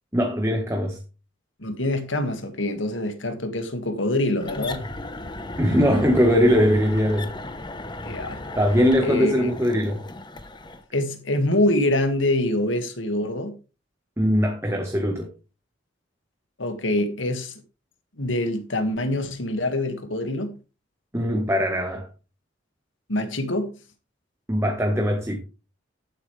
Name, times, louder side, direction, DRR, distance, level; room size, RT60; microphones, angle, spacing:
voice 1, 0.1-1.0 5.6-7.3 8.5-10.0 14.2-15.3 21.1-22.1 24.5-25.4, equal, 15° right, 1.6 m, -21 dB
voice 2, 1.6-4.8 8.0-8.4 9.0-9.5 10.9-13.5 16.6-17.5 18.2-20.5 23.1-23.7, left 1 dB, 85° left, 2.2 m, -25 dB
sound 1, 4.4-10.8, left 2 dB, 25° left, 1.2 m, -35 dB
11.5 x 10.5 x 3.5 m
head